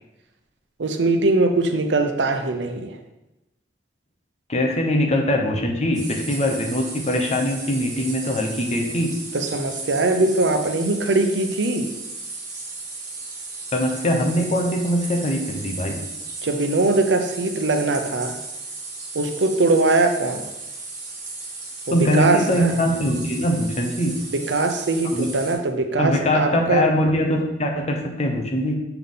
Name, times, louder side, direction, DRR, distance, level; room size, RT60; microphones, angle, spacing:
voice 1, 0.8-3.0 9.3-11.9 16.4-18.4 19.1-20.4 21.9-22.8 24.3-26.9, right 2 dB, 90° right, 6 dB, 0.7 m, -21 dB
voice 2, 4.5-9.1 13.7-16.0 21.9-24.2 25.1-25.3 26.0-28.7, left 1 dB, 40° left, 2 dB, 0.9 m, -22 dB
sound 1, 5.9-25.5, right 3 dB, 45° right, 1.7 m, -35 dB
6.8 x 3.7 x 3.9 m, 0.95 s
head